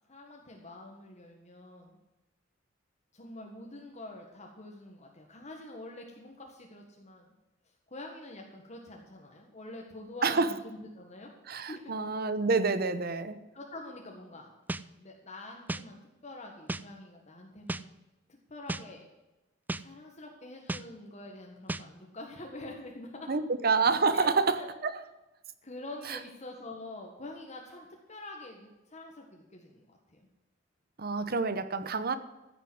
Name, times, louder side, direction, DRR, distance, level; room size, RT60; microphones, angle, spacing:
voice 1, 0.1-2.0 3.1-7.3 7.9-11.3 11.7-11.9 13.5-14.5 15.0-17.9 18.5-19.0 19.8-23.3 24.1-24.7 25.6-30.3, left 2 dB, 35° left, 1.6 m, -46 dB
voice 2, 11.5-13.4 23.3-24.9 26.1-26.2 31.0-32.2, right 4 dB, 50° right, 0.9 m, -28 dB
sound 1, 14.7-14.8 15.7-15.8 16.7-16.8 17.7-17.8 18.7-18.8 19.7-19.8 20.7-20.8 21.7-21.8, right 2 dB, 10° right, 0.3 m, -33 dB
15.0 x 6.9 x 7.9 m
head